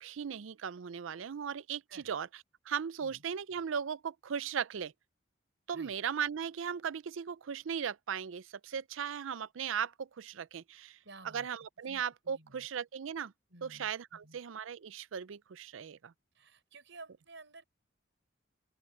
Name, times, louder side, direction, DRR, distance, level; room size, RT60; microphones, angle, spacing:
voice 1, 0.0-2.3 2.7-4.9 5.7-11.0 11.3-13.3 13.6-16.1, right 7 dB, 85° right, 0.5 m, -37 dB
voice 2, 10.7-11.5 11.8-12.7 13.5-14.4 16.3-17.6, right 3 dB, 70° right, 6.9 m, -54 dB
open air
head